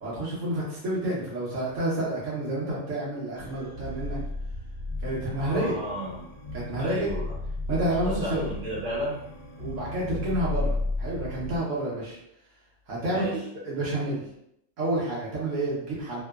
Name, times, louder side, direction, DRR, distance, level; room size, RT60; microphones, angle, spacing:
voice 1, 0.0-4.2 5.0-5.7 6.5-7.1 7.7-8.5 9.6-12.2 12.9-14.2 14.8-16.2, right 1 dB, 75° right, -6 dB, 1.2 m, -29 dB
sound 1, 3.3-11.6, left 2 dB, 85° left, 1.0 m, -34 dB
voice 2, 5.4-6.3 6.8-7.3 8.0-9.2 13.1-13.4, right 1 dB, 45° right, -5 dB, 0.9 m, -33 dB
2.9 x 2.1 x 2.3 m, 0.76 s
omnidirectional pair, 1.3 m